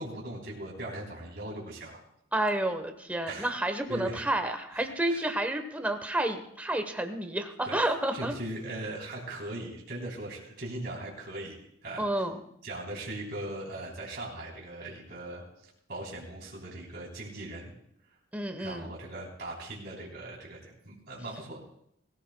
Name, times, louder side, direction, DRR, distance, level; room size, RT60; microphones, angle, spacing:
voice 1, 0.0-2.0 3.3-3.5 3.9-4.2 4.7-5.4 7.7-7.8 8.1-12.0 12.6-15.4 15.9-17.7 18.6-21.6, right 1 dB, 50° right, -3 dB, 3.3 m, -39 dB
voice 2, 2.3-8.3 12.0-12.4 18.3-18.9, right 1 dB, 10° right, 6 dB, 0.9 m, -30 dB
21.0 x 15.0 x 2.2 m, 0.71 s
head